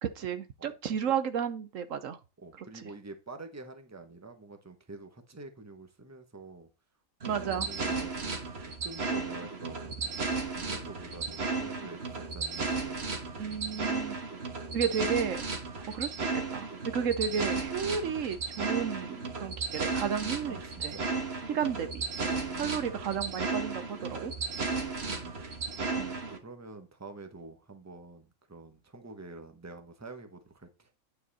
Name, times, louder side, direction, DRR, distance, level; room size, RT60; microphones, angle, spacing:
voice 1, 0.0-2.2 2.8-2.9 7.3-7.7 13.4-14.1 14.7-15.5 15.7-20.6 20.8-20.9 21.5-24.3 26.0-26.2, right 7 dB, 70° right, 1.2 m, -33 dB
voice 2, 2.4-6.7 7.2-8.3 8.6-9.9 10.5-13.6 20.4-21.0 22.3-23.2 24.6-25.5 26.2-30.9, right 3 dB, 15° right, 1.1 m, -47 dB
sound 1, 7.2-26.4, right 4 dB, 50° right, 1.6 m, -34 dB
9.4 x 5.7 x 4.2 m
omnidirectional pair, 1.4 m